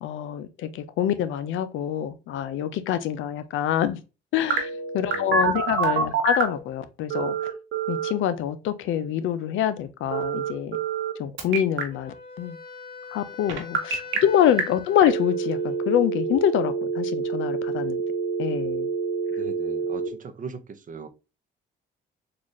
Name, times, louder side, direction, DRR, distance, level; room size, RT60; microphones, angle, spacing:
voice 1, 0.0-4.0 4.3-7.5 7.9-10.8 11.2-12.6 13.1-18.0 18.4-18.9, left 10 dB, 80° left, 0.5 m, -26 dB
Telephone, 4.5-6.6 7.1-8.1 10.1-11.1 11.4-11.8 13.5-14.2 14.6-14.7 15.0-20.1, right 5 dB, 75° right, 1.0 m, -27 dB
Wind instrument woodwind instrument, 11.9-16.0, left 5 dB, 45° left, 0.9 m, -42 dB
voice 2, 19.4-21.1, right 5 dB, 40° right, 0.5 m, -39 dB
3.9 x 2.4 x 3.0 m
cardioid pair, 90°, 20 cm